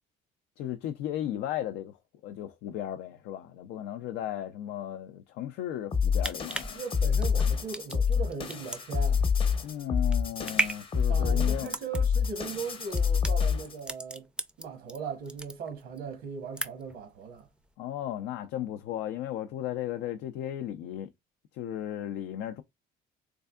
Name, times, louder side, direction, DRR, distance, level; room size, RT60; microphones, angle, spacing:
voice 1, 0.6-6.8 9.6-11.7 17.8-21.1 21.5-22.6, left 11 dB, 85° left, 0.4 m, -35 dB
sound 1, 5.9-13.8, left 6 dB, 30° left, 0.7 m, -27 dB
sound 2, 5.9-15.0 15.3-16.0 16.3-17.0 17.4-17.5, right 2 dB, 5° right, 0.4 m, -36 dB
voice 2, 6.7-9.2 11.1-14.3 14.6-17.5, right 6 dB, 90° right, 0.9 m, -38 dB
3.5 x 3.3 x 2.3 m
cardioid pair, 110°, 17 cm